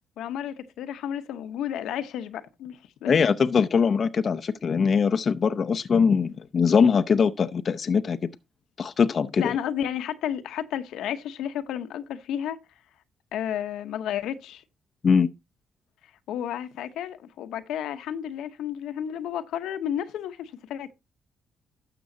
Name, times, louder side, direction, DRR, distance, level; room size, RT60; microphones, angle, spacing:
voice 1, 0.2-3.2 9.4-12.6 13.3-14.6 16.3-20.9, left 10 dB, 85° left, 0.9 m, -32 dB
voice 2, 3.1-8.2 8.8-9.4 15.0-15.3, left 6 dB, 45° left, 0.6 m, -22 dB
12.5 x 6.9 x 2.7 m
cardioid pair, 90°, 0 cm